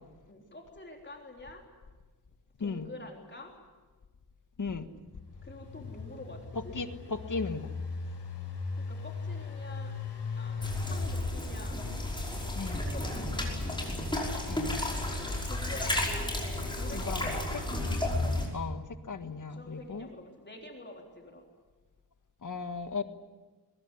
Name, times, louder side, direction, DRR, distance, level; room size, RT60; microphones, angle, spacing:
voice 1, 0.3-1.6 2.6-3.5 5.4-6.4 6.6-6.8 8.9-9.9 10.4-10.6 10.9-11.8 12.6-13.6 15.4-16.3 16.8-17.7 19.5-21.4, left 2 dB, 25° left, 1 dB, 3.8 m, -47 dB
Engine, 5.1-13.1, left 4 dB, 80° left, 5.3 m, -39 dB
voice 2, 6.7-7.7 12.5-12.8 14.5-14.8 16.9-17.4 18.5-20.1 22.4-23.0, left 4 dB, 50° left, 9 dB, 1.6 m, -36 dB
sound 1, 10.6-18.5, left 1 dB, 10° left, 5.6 m, -32 dB
23.0 x 21.0 x 9.9 m, 1.3 s
wide cardioid pair, 175°, 40 cm